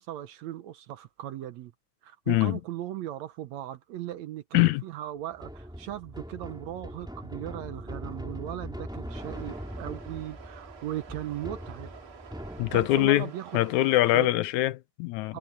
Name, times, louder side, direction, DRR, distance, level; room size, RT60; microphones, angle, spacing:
voice 1, 0.0-1.7 2.0-11.9 12.7-13.6 14.1-14.3 15.3-15.4, right 13 dB, 70° right, 1.8 m, -38 dB
voice 2, 2.3-2.6 4.5-4.8 12.6-13.3 13.5-15.4, left 16 dB, 80° left, 1.9 m, -23 dB
sound 1, 5.3-13.1, equal, ahead, 2.6 m, -41 dB
sound 2, 9.1-14.2, right 6 dB, 45° right, 2.5 m, -49 dB
omnidirectional pair, 3.6 m